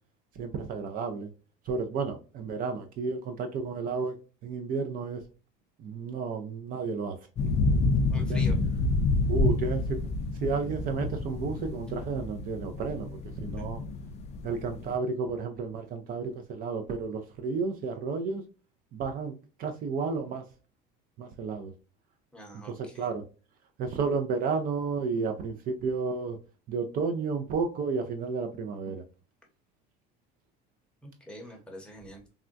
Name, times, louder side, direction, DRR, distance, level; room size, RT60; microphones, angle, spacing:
voice 1, 0.4-1.3 1.7-5.2 5.8-7.2 8.3-8.4 9.3-10.0 10.4-13.8 14.4-18.4 18.9-20.4 21.2-21.7 22.6-23.2 23.8-26.4 26.7-29.0, right 4 dB, 45° right, 0.4 m, -32 dB
sound 1, 7.4-15.0, left 3 dB, 35° left, 0.4 m, -28 dB
voice 2, 8.1-8.6 13.6-13.7 22.3-23.1 31.0-32.2, left 1 dB, 5° left, 0.8 m, -45 dB
3.5 x 2.2 x 2.4 m
cardioid pair, 135°, 20 cm